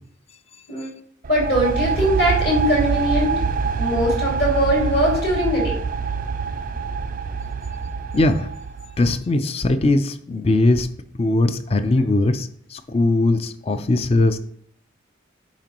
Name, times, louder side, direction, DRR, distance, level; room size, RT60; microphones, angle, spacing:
sound 1, 1.2-9.0, right 5 dB, 40° right, 0.3 m, -25 dB
voice 1, 1.3-3.3 3.8-5.8, equal, 50° left, -3 dB, 2.4 m, -21 dB
voice 2, 8.1-8.5 9.0-10.9 11.2-14.4, left 2 dB, 30° left, 12 dB, 0.4 m, -20 dB
8.9 x 5.2 x 3.0 m, 0.63 s
head